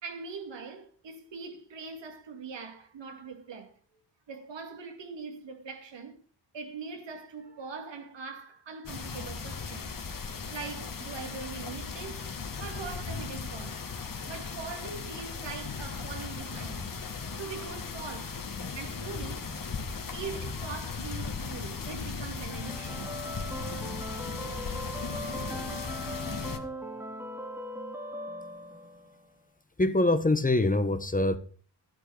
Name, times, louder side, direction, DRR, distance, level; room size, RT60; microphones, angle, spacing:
voice 1, 0.0-3.7 4.3-6.2 6.5-9.9 10.5-12.3 12.6-13.8 14.3-16.9 17.4-18.4 18.8-19.5 19.9-23.2, right 5 dB, 80° right, 2.7 m, -42 dB
sound 1, 8.8-26.6, left 5 dB, 50° left, 2.1 m, -37 dB
sound 2, 22.3-29.3, equal, 5° right, 2.5 m, -39 dB
voice 2, 29.8-31.4, left 2 dB, 20° left, 1.3 m, -24 dB
12.0 x 11.5 x 5.1 m
cardioid pair, 75°, 43 cm